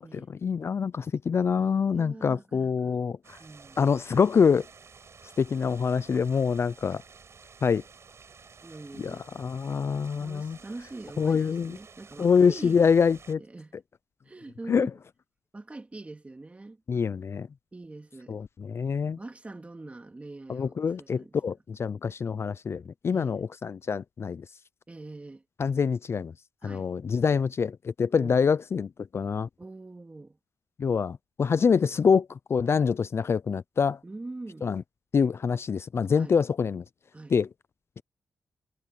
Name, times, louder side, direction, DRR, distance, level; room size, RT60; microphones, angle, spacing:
voice 1, 0.1-3.4 3.8-4.7 5.4-7.0 7.6-7.8 9.0-10.6 11.2-11.8 12.2-13.4 14.7-14.9 16.9-17.5 18.3-19.2 20.5-24.5 25.6-26.3 26.6-29.5 30.8-34.0 34.6-34.8 35.1-36.8 37.3-37.5, left 6 dB, 45° left, 0.4 m, -25 dB
voice 2, 1.9-3.0 3.4-3.8 8.6-9.3 10.2-12.7 13.5-13.7 14.2-14.9 15.5-16.8 17.7-18.4 19.2-21.4 23.1-23.4 24.9-25.4 26.6-26.9 28.2-28.4 29.6-30.4 34.0-34.7 36.1-36.4 37.1-37.3, right 2 dB, 20° right, 2.7 m, -43 dB
sound 1, 3.2-13.3, right 5 dB, 50° right, 6.1 m, -52 dB
cardioid pair, 105°, 6 cm